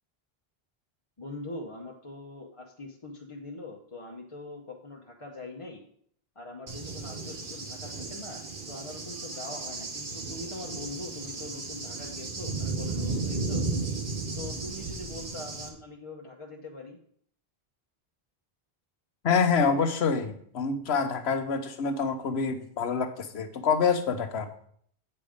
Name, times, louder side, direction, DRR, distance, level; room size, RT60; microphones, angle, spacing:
voice 1, 1.2-5.8 6.4-13.7 14.3-17.0, left 2 dB, 35° left, -1 dB, 0.8 m, -42 dB
Cricket / Thunder, 6.7-15.7, right 3 dB, 55° right, 1.4 m, -34 dB
voice 2, 19.2-24.5, left 5 dB, 90° left, 9 dB, 1.1 m, -26 dB
8.8 x 5.5 x 5.0 m, 0.63 s
omnidirectional pair, 1.0 m